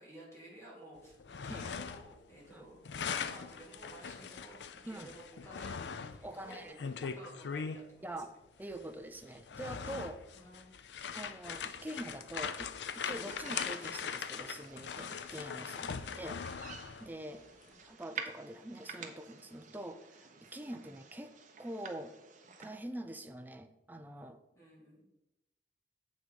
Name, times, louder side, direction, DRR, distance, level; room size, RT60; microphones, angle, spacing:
voice 1, 0.0-5.8 6.2-8.3 10.3-10.8 17.3-17.8 24.5-25.1, right 1 dB, 15° left, -5 dB, 3.7 m, -54 dB
sound 1, 1.1-2.2 2.5-7.8 8.7-8.8 9.3-17.1, left 6 dB, 75° left, 0.5 m, -41 dB
voice 2, 4.8-5.1 6.2-6.8 7.0-7.2 8.0-8.3 8.6-10.2 11.1-16.4 17.0-17.5 17.9-21.3 21.6-22.1 22.6-24.4, right 1 dB, 10° right, 7 dB, 0.6 m, -45 dB
sound 2, 13.1-22.7, right 6 dB, 45° right, 1.0 m, -50 dB
7.8 x 6.4 x 5.2 m, 0.96 s
head